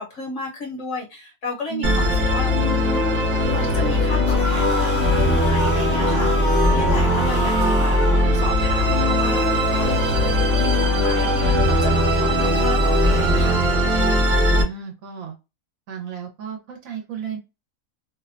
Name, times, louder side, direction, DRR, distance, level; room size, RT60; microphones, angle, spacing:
voice 1, 0.0-3.0 3.5-10.2 10.6-13.6, left 2 dB, 65° left, 1.0 m, -33 dB
voice 2, 1.7-2.2 14.5-15.4 15.9-17.4, right 8 dB, 75° right, 1.0 m, -33 dB
Musical instrument, 1.8-14.6, left 1 dB, 30° right, 0.8 m, -19 dB
sound 1, 4.3-8.3, equal, 30° left, 0.3 m, -27 dB
2.6 x 2.1 x 2.3 m
omnidirectional pair, 1.4 m